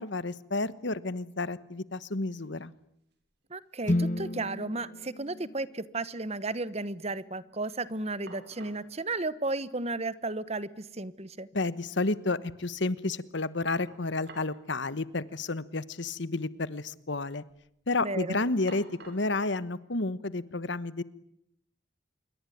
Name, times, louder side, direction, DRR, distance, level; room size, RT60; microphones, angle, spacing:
voice 1, 0.0-2.7 11.5-17.4 17.9-21.0, left 2 dB, 65° left, 16 dB, 1.2 m, -31 dB
sound 1, 1.8-1.9 2.1-2.7 3.1-4.0 4.2-4.3 7.8-7.9 8.3-8.9 10.0-10.1 10.5-10.6 13.9-14.6 14.9-15.0 15.9-16.2 16.5-17.0 17.4-17.8 18.7-19.4, right 3 dB, 55° right, 5.5 m, -52 dB
voice 2, 3.5-11.5 18.0-18.4, right 2 dB, 35° right, 16 dB, 1.1 m, -34 dB
sound 2, 3.8-7.9, left 1 dB, 40° left, 1.3 m, -35 dB
27.0 x 22.5 x 9.3 m, 0.74 s
head